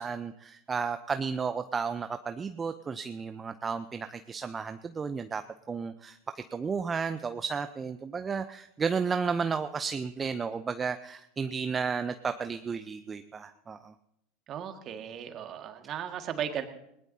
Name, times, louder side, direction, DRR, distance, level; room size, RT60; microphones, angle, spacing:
voice 1, 0.0-5.4 5.7-13.9, right 5 dB, 25° right, 9 dB, 0.6 m, -33 dB
voice 2, 14.5-16.7, right 9 dB, 40° right, 6 dB, 1.9 m, -36 dB
20.0 x 19.5 x 2.8 m, 0.80 s
hypercardioid pair, 85°, 0 cm